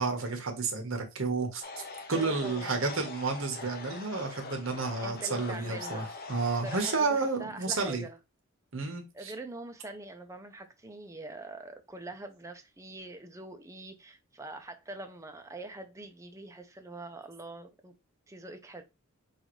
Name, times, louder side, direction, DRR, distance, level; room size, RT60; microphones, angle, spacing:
voice 1, 0.0-1.6 2.1-8.0 8.7-9.3, right 4 dB, 70° right, 1.2 m, -31 dB
sound 1, 1.6-7.0, left 4 dB, 45° left, 0.7 m, -43 dB
voice 2, 2.1-2.8 5.0-6.3 6.6-8.2 8.8-17.9 18.3-18.8, right 2 dB, 15° right, 0.6 m, -44 dB
5.5 x 2.6 x 3.1 m
head